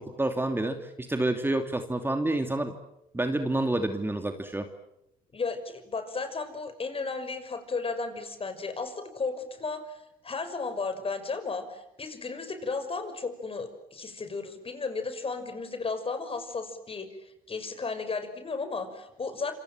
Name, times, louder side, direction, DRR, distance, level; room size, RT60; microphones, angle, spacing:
voice 1, 0.0-2.7 3.1-4.7, right 2 dB, 10° right, 6 dB, 2.7 m, -28 dB
voice 2, 5.3-19.5, left 4 dB, 30° left, 9 dB, 6.1 m, -34 dB
27.5 x 26.5 x 7.5 m, 0.83 s
supercardioid pair, 80°, 18 cm